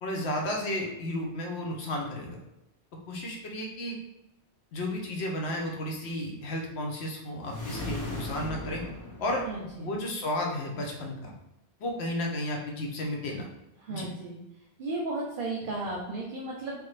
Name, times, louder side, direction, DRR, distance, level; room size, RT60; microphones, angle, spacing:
voice 1, 0.0-2.4 3.1-4.0 4.7-8.8 9.2-9.4 9.8-11.3 11.8-13.5 13.9-14.1, left 1 dB, 80° left, 0 dB, 0.9 m, -33 dB
sound 1, 7.4-10.0, left 1 dB, 30° left, 0.4 m, -38 dB
voice 2, 9.4-9.9 13.8-14.4 14.8-16.8, right 2 dB, 60° right, -2 dB, 0.7 m, -34 dB
3.3 x 2.2 x 3.2 m, 0.88 s
omnidirectional pair, 1.1 m